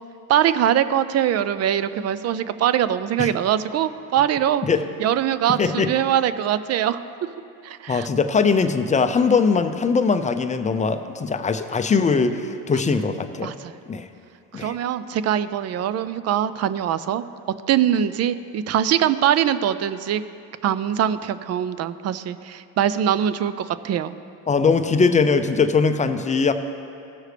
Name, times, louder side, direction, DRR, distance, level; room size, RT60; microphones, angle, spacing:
voice 1, 0.3-4.6 5.0-7.0 7.6-8.1 13.4-13.7 14.5-17.2 17.7-20.2 20.6-24.1, right 10 dB, 45° right, 14 dB, 0.4 m, -22 dB
voice 2, 5.6-5.9 7.9-13.5 13.9-14.1 14.5-14.8 24.5-26.5, left 5 dB, 20° left, 8 dB, 0.5 m, -21 dB
16.5 x 6.4 x 3.3 m, 2.5 s
supercardioid pair, 100°, 38 cm